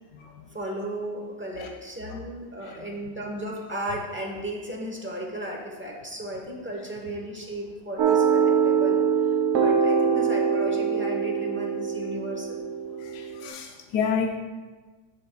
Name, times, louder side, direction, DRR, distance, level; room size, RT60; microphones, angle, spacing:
voice 1, 0.5-12.6, right 1 dB, 15° right, -2 dB, 0.4 m, -35 dB
sound 1, 8.0-13.5, right 6 dB, 60° right, 0.8 m, -23 dB
voice 2, 13.1-14.4, left 6 dB, 70° left, 3 dB, 1.0 m, -29 dB
12.5 x 5.0 x 2.2 m, 1.3 s
omnidirectional pair, 1.9 m